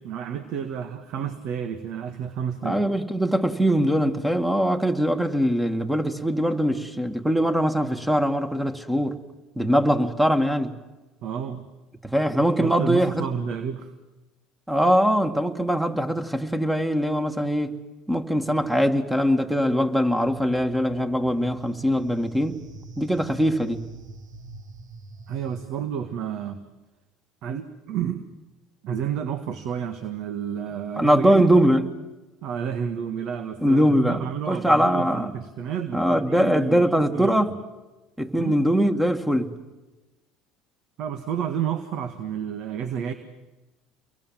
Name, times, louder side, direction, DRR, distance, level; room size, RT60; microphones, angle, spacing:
voice 1, 0.0-2.8 11.2-11.7 12.6-13.9 25.3-26.6 27.4-28.2 28.8-31.5 32.4-37.4 38.4-38.6 41.0-43.1, right 8 dB, 60° right, 1.7 m, -30 dB
voice 2, 2.6-9.2 9.6-10.7 12.0-13.3 14.7-17.8 18.1-22.6 23.0-23.8 31.0-31.9 33.6-35.3 35.9-37.6 38.2-39.5, equal, 5° right, 2.1 m, -22 dB
sound 1, 20.2-25.7, right 2 dB, 85° right, 3.4 m, -43 dB
29.0 x 23.0 x 7.6 m
supercardioid pair, 85°, 0 cm